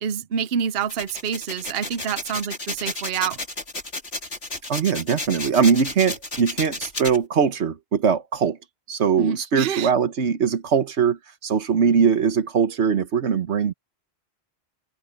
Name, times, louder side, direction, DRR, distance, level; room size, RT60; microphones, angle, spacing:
voice 1, 0.0-3.4 9.2-9.9, right 8 dB, 65° right, 0.9 m, -27 dB
sound 1, 0.8-7.2, left 2 dB, 70° left, 4.0 m, -32 dB
voice 2, 4.7-8.6 8.9-13.7, right 6 dB, 90° right, 1.4 m, -21 dB
omnidirectional pair, 1.1 m